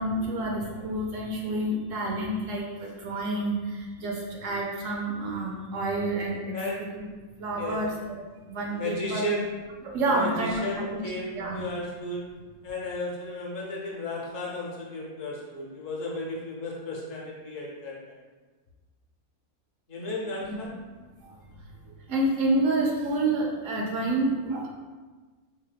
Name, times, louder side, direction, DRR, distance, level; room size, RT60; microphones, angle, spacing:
voice 1, 0.0-6.5 7.4-8.2 8.4-9.2 9.9-11.0 11.3-11.6 21.2-21.4 22.1-24.7, right 2 dB, 70° right, -1 dB, 0.9 m, -28 dB
voice 2, 7.5-7.8 8.7-9.5 10.0-12.2 12.6-18.2 19.9-20.8, left 1 dB, 65° left, -3 dB, 1.1 m, -34 dB
3.5 x 3.0 x 3.3 m, 1.3 s
omnidirectional pair, 1.5 m